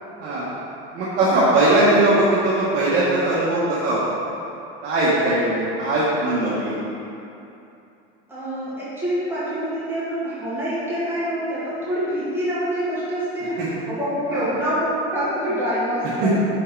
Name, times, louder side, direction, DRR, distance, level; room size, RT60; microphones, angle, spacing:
voice 1, 0.2-0.5 0.9-4.0 4.8-6.8 13.6-13.7 14.3-14.4 16.2-16.3, right 2 dB, 35° right, -9 dB, 1.1 m, -20 dB
voice 2, 8.3-13.6 13.9-16.3, equal, 10° right, -11 dB, 1.4 m, -26 dB
5.4 x 4.5 x 4.5 m, 2.8 s
cardioid pair, 160°, 30 cm